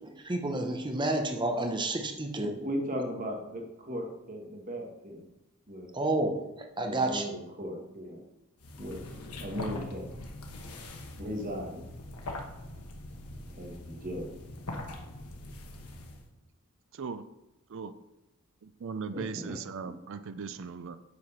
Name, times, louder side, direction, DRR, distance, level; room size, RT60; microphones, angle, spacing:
voice 1, 0.0-2.5 5.9-6.4 6.8-7.3, right 2 dB, 20° right, 4 dB, 0.9 m, -30 dB
voice 2, 2.4-5.3 5.7-5.9 6.8-8.2 8.8-9.0 9.4-10.1 11.2-11.9 13.5-14.4 19.1-19.6, equal, 35° right, 1 dB, 1.6 m, -37 dB
sound 1, 8.6-16.3, left 1 dB, 90° left, 1.3 m, -42 dB
voice 3, 18.6-21.0, right 5 dB, 60° right, 11 dB, 0.5 m, -38 dB
8.2 x 4.9 x 5.8 m, 0.92 s
head